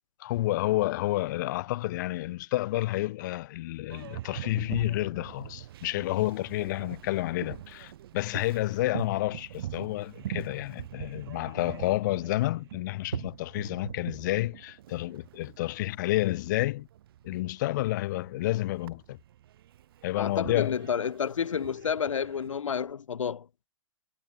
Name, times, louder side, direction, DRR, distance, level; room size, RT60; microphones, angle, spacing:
voice 1, 0.2-16.9 17.2-19.2 20.0-20.8, left 17 dB, 35° left, 3.0 m, -30 dB
Boat Water vehicle, 3.9-22.9, right 12 dB, 50° right, 2.0 m, -43 dB
voice 2, 20.2-23.5, left 7 dB, 85° left, 3.7 m, -30 dB
hypercardioid pair, 165°, 16 cm